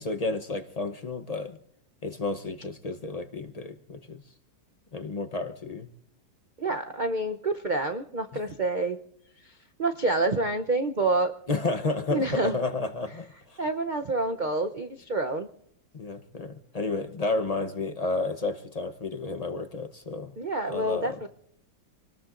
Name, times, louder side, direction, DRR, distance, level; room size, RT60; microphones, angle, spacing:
voice 1, 0.0-1.6 2.0-4.2 4.9-5.9 11.5-13.6 15.9-20.3 20.7-21.2, left 3 dB, 45° left, 8 dB, 0.4 m, -31 dB
voice 2, 6.6-9.0 9.4-9.5 9.8-11.3 12.1-12.6 13.6-15.5 20.4-21.3, right 2 dB, 85° right, 6 dB, 0.4 m, -27 dB
27.0 x 19.5 x 2.5 m, 0.70 s
omnidirectional pair, 2.0 m